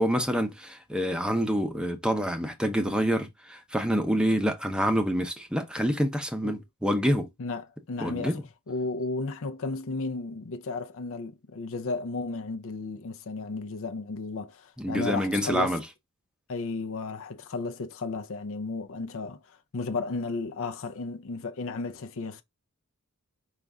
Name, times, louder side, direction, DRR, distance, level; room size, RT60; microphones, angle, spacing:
voice 1, 0.0-7.3 8.0-8.4 14.8-15.8, equal, 5° right, 0.7 m, -27 dB
voice 2, 7.4-15.8 16.5-22.4, left 3 dB, 60° left, 0.5 m, -34 dB
5.2 x 2.4 x 3.4 m
head